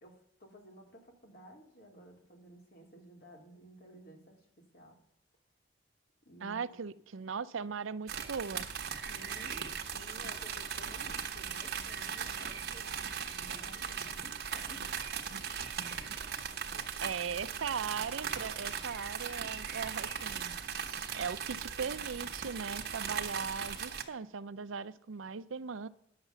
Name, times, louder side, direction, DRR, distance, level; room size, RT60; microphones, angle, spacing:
voice 1, 0.0-4.5 4.7-5.0 6.2-6.8 9.1-14.9 16.7-17.1, equal, 50° left, 2.7 m, -54 dB
voice 2, 6.4-8.7 15.3-15.4 15.8-16.2 17.0-20.6 21.1-25.9, right 6 dB, 85° right, 0.5 m, -39 dB
sound 1, 8.1-24.0, right 7 dB, 55° right, 1.3 m, -38 dB
10.5 x 7.4 x 6.7 m
head